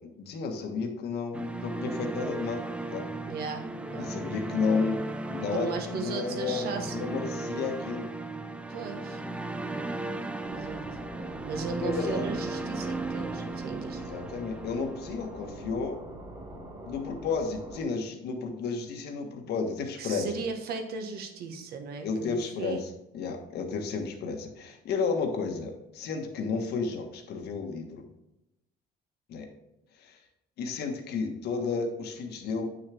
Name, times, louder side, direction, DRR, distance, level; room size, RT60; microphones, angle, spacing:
voice 1, 0.0-3.0 4.0-5.0 5.3-8.1 11.8-12.3 13.9-16.0 16.8-20.3 22.0-22.9 23.1-28.0 29.3-29.5 30.0-30.2 30.6-32.7, left 4 dB, 65° left, 4 dB, 1.4 m, -32 dB
sound 1, 1.3-15.4, right 2 dB, 5° right, 0.4 m, -36 dB
voice 2, 3.3-4.1 5.5-7.1 8.7-9.2 10.5-10.8 11.4-14.0 20.0-22.8, right 5 dB, 60° right, 4 dB, 1.4 m, -37 dB
sound 2, 10.4-17.8, right 1 dB, 25° right, 2.7 m, -44 dB
9.0 x 6.4 x 3.5 m, 0.87 s
cardioid pair, 150°, 18 cm